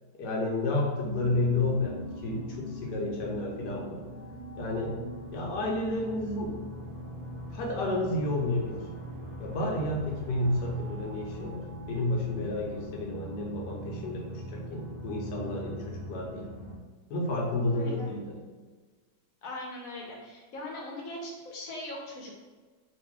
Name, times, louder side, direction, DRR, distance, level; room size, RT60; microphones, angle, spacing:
voice 1, 0.1-4.0 4.6-5.0 5.3-6.6 7.5-8.8 9.4-16.5 17.1-18.4, left 2 dB, 75° left, -1 dB, 1.4 m, -31 dB
sound 1, 1.0-16.8, equal, 85° right, 0.5 m, -41 dB
voice 2, 17.7-18.1 19.4-22.4, left 1 dB, 60° left, -2 dB, 1.2 m, -40 dB
3.9 x 2.6 x 3.5 m, 1.4 s
omnidirectional pair, 1.8 m